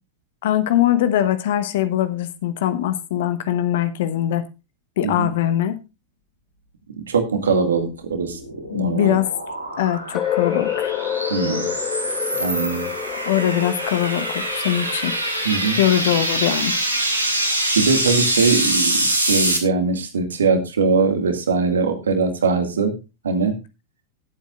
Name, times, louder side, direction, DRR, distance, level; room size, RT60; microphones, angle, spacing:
voice 1, 0.4-4.4 5.0-5.8 8.7-9.3 9.8-10.9 13.3-15.2 15.8-16.8, left 12 dB, 55° left, 1.1 m, -21 dB
voice 2, 7.1-8.4 8.7-9.2 11.3-11.7 12.4-12.9 15.4-15.8 17.8-22.9 23.2-23.6, right 4 dB, 70° right, 2.1 m, -21 dB
sound 1, 8.0-19.6, right 1 dB, 90° right, 2.5 m, -25 dB
sound 2, 10.1-16.0, left 10 dB, 30° left, 0.9 m, -28 dB
19.0 x 8.3 x 2.5 m
figure-of-eight pair, 90°, 0 cm